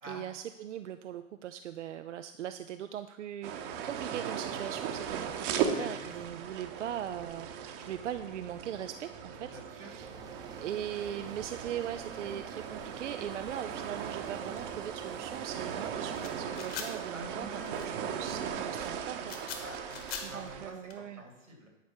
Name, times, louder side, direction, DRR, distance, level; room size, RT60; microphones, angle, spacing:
voice 1, 0.1-10.1 10.6-17.5 17.8-19.4 20.2-21.2, right 10 dB, 65° right, 10 dB, 0.5 m, -40 dB
sound 1, 3.4-20.7, right 7 dB, 40° right, 1.0 m, -38 dB
voice 2, 5.6-6.1 9.4-9.9 17.1-18.0 19.6-21.7, right 1 dB, 85° right, 1 dB, 3.0 m, -47 dB
sound 2, 10.0-15.9, right 4 dB, 10° right, 0.8 m, -49 dB
sound 3, 13.4-20.9, left 6 dB, 40° left, 1.7 m, -45 dB
10.5 x 5.2 x 6.2 m, 0.99 s
figure-of-eight pair, 100°, 40 cm